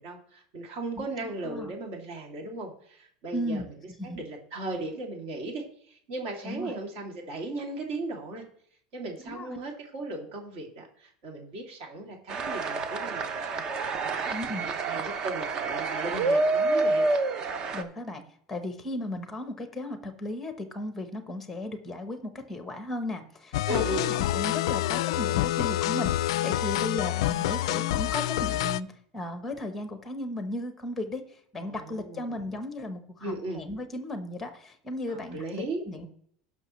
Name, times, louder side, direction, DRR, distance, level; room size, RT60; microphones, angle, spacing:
voice 1, 0.0-3.6 4.0-8.4 8.9-13.6 14.0-17.1 23.7-24.1 31.6-32.2 33.2-33.6 35.1-35.9, right 2 dB, 45° right, 1 dB, 2.6 m, -37 dB
voice 2, 1.0-1.7 3.3-3.7 4.0-4.2 6.4-6.7 9.3-9.6 14.3-14.7 17.7-18.2 18.5-28.9 29.1-36.1, left 1 dB, 5° left, 7 dB, 1.0 m, -35 dB
sound 1, 12.3-17.8, right 3 dB, 25° right, 0.7 m, -28 dB
sound 2, 23.5-28.8, left 15 dB, 85° left, 0.3 m, -27 dB
17.0 x 6.1 x 3.1 m, 0.64 s
supercardioid pair, 175°, 3 cm